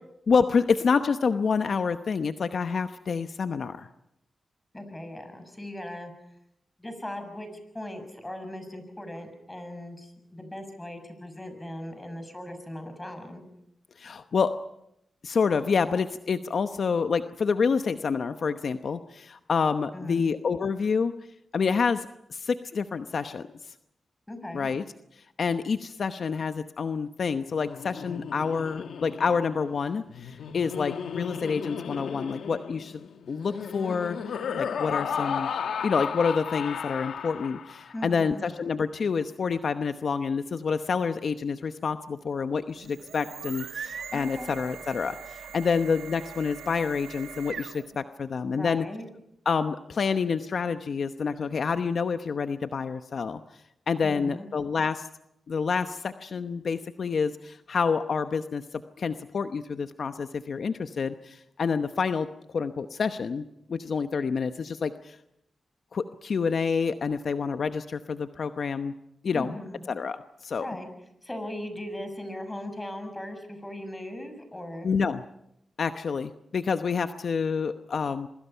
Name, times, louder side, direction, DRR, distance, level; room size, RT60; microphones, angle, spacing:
voice 1, 0.3-3.9 14.0-14.5 15.2-21.1 21.5-22.1 22.3-23.5 24.5-24.8 25.4-35.5 35.8-48.8 49.5-53.4 53.9-55.1 55.5-62.3 62.5-63.4 63.7-65.1 65.9-68.9 69.2-69.5 69.9-70.7 74.8-75.2 75.8-78.3, left 5 dB, 70° left, 9 dB, 0.9 m, -28 dB
voice 2, 4.7-6.1 6.8-7.5 7.7-13.4 19.9-20.3 24.3-24.7 37.9-38.4 44.1-44.5 48.5-49.1 54.0-54.5 69.3-69.8 70.6-70.9 71.2-74.9, left 1 dB, 20° left, 8 dB, 6.7 m, -38 dB
Laughter, 27.5-38.0, left 7 dB, 90° left, 1.3 m, -34 dB
sound 1, 42.7-48.0, right 7 dB, 85° right, 1.5 m, -41 dB
27.5 x 23.5 x 5.7 m, 0.78 s
cardioid pair, 60°, 0 cm